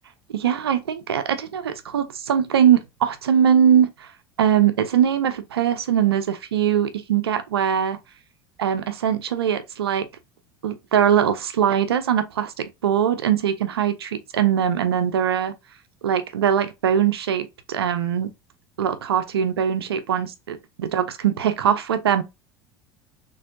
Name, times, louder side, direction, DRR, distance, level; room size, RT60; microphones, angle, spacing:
voice 1, 0.3-4.1 4.4-8.0 8.6-10.1 10.6-15.5 16.0-18.3 18.8-22.2, right 9 dB, 80° right, 0.6 m, -21 dB
4.2 x 3.3 x 2.7 m
figure-of-eight pair, 75°, 13 cm